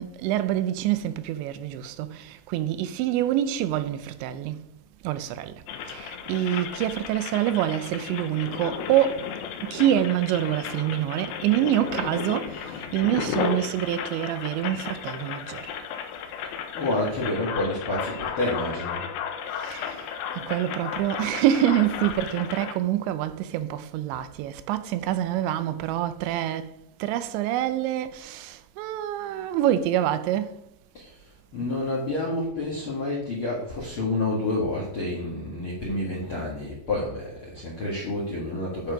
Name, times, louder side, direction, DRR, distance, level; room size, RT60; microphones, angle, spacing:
voice 1, 0.0-4.6 5.0-5.5 5.9-9.3 9.6-15.7 19.5-20.1 20.4-30.6, right 12 dB, 85° right, 2.9 m, -26 dB
sound 1, 5.7-22.7, left 7 dB, 80° left, 2.2 m, -34 dB
voice 2, 16.7-19.0 30.9-38.9, left 2 dB, 60° left, 1.3 m, -29 dB
10.5 x 4.7 x 5.1 m
omnidirectional pair, 5.1 m